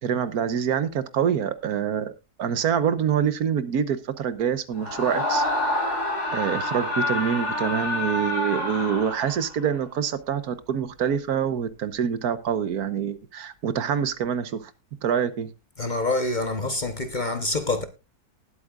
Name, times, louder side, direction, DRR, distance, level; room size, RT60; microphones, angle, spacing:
voice 1, 0.0-6.0 6.3-14.7 15.0-15.5, right 8 dB, 75° right, 1.5 m, -26 dB
Screaming, 4.8-9.6, left 1 dB, 85° left, 5.1 m, -27 dB
voice 2, 15.8-17.8, left 2 dB, 35° left, 0.9 m, -26 dB
19.5 x 8.4 x 2.4 m
omnidirectional pair, 1.6 m